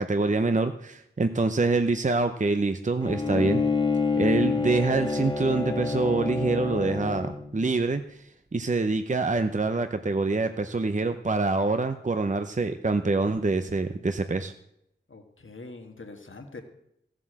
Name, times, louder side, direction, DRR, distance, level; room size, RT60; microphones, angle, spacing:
voice 1, 0.0-3.6 4.2-8.2 8.5-14.5, right 3 dB, 35° right, 8 dB, 0.7 m, -25 dB
Bowed string instrument, 3.0-7.7, left 4 dB, 20° left, 1.7 m, -27 dB
voice 2, 15.1-16.6, left 3 dB, 70° left, 4 dB, 1.7 m, -43 dB
14.5 x 7.6 x 7.6 m, 0.79 s
wide cardioid pair, 60°, 21 cm